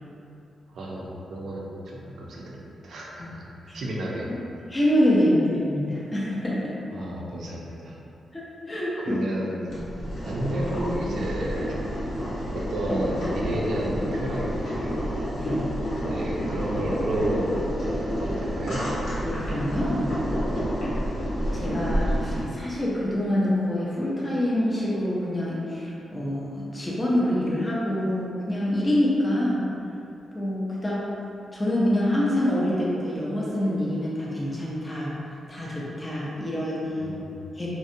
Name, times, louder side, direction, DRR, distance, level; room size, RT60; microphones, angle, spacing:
voice 1, 0.7-3.5 3.7-4.4 6.9-8.0 9.1-9.9 10.2-11.7 12.5-15.0 16.1-17.6 18.2-18.8 20.5-20.6 37.0-37.4, right 1 dB, 65° right, -3 dB, 0.4 m, -31 dB
voice 2, 4.7-6.7 8.3-9.2 15.4-15.7 19.2-20.2 21.5-29.7 30.3-31.1 31.5-35.1 35.5-37.2 37.6-37.7, left 1 dB, 15° left, -6 dB, 0.4 m, -26 dB
Boiling, 9.7-22.4, equal, 85° left, 0.9 m, -29 dB
2.6 x 2.1 x 2.5 m, 2.7 s
wide cardioid pair, 145°, 0 cm